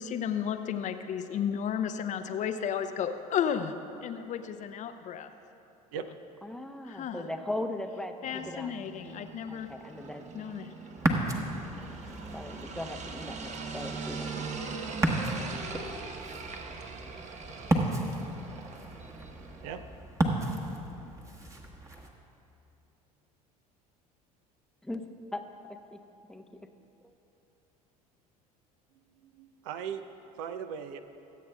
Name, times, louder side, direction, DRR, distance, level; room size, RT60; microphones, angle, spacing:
voice 1, 0.0-3.7 4.0-5.3 6.8-7.3 8.2-9.7 10.3-10.7, left 8 dB, 40° left, 9 dB, 0.6 m, -33 dB
voice 2, 6.4-8.2 8.5-8.7 9.5-10.3 12.3-14.3 24.8-25.0 25.3-26.0 26.3-26.4, left 1 dB, 5° left, 6 dB, 0.8 m, -38 dB
sound 1, 8.2-19.8, right 4 dB, 40° right, 1.1 m, -42 dB
Ocean, 10.9-22.1, right 2 dB, 15° right, 1.3 m, -34 dB
voice 3, 29.1-30.0 30.4-31.0, right 7 dB, 65° right, 9 dB, 0.6 m, -38 dB
24.5 x 8.4 x 2.3 m, 2.8 s
hypercardioid pair, 70°, 19 cm